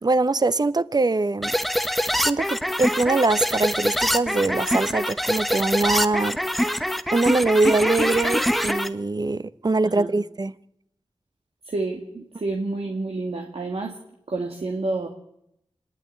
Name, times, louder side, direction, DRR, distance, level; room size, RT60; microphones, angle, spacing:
voice 1, 0.0-1.5 2.2-6.8 7.1-10.5, right 3 dB, 40° right, 0.8 m, -23 dB
sound 1, 1.4-8.9, equal, ahead, 1.0 m, -24 dB
voice 2, 11.6-13.9 14.3-15.1, right 2 dB, 75° right, 2.0 m, -29 dB
26.0 x 11.0 x 9.6 m
wide cardioid pair, 70°, 10 cm